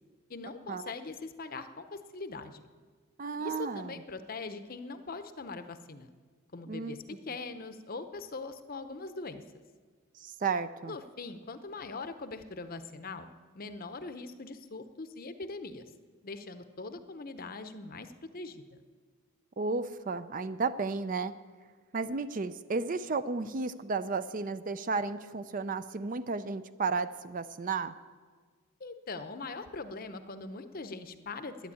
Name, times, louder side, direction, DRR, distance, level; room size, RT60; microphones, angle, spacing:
voice 1, 0.3-2.7 3.4-6.1 6.5-9.4 10.8-13.3 13.5-15.8 16.2-18.8 28.8-31.7, left 3 dB, 40° left, 10 dB, 0.7 m, -41 dB
voice 2, 3.2-3.9 6.7-7.0 10.2-10.9 19.6-21.3 21.9-27.9, right 4 dB, 40° right, 13 dB, 0.4 m, -33 dB
11.5 x 10.5 x 8.4 m, 1.5 s
head